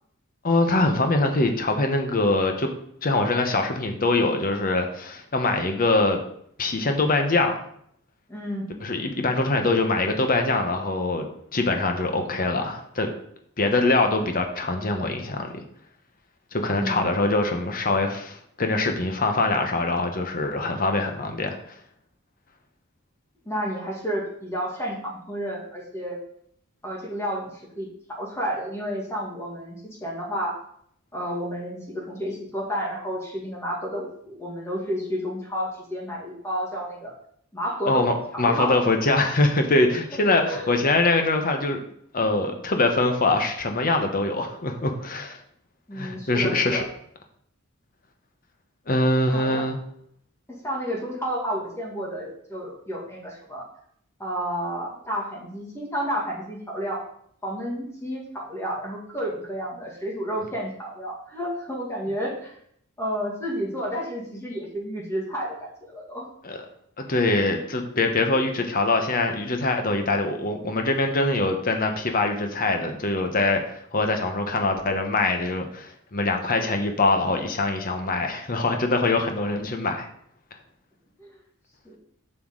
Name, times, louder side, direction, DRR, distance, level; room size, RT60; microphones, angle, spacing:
voice 1, 0.4-2.7 3.0-6.2 6.6-7.7 8.8-13.1 13.6-15.5 16.5-21.6 37.9-41.8 42.1-45.4 46.0-46.8 48.9-49.8 66.4-66.6 67.0-80.1, left 2 dB, 40° left, 5 dB, 1.0 m, -23 dB
voice 2, 8.3-8.7 16.7-17.1 23.5-26.2 26.8-30.6 31.1-37.1 37.5-38.1 38.3-38.8 40.4-40.7 45.9-46.9 49.3-49.6 50.5-53.6 54.2-57.0 57.4-62.5 63.0-66.3 81.2-81.4 81.8-82.0, equal, 15° left, -3 dB, 2.3 m, -31 dB
7.3 x 6.8 x 3.9 m, 0.66 s
head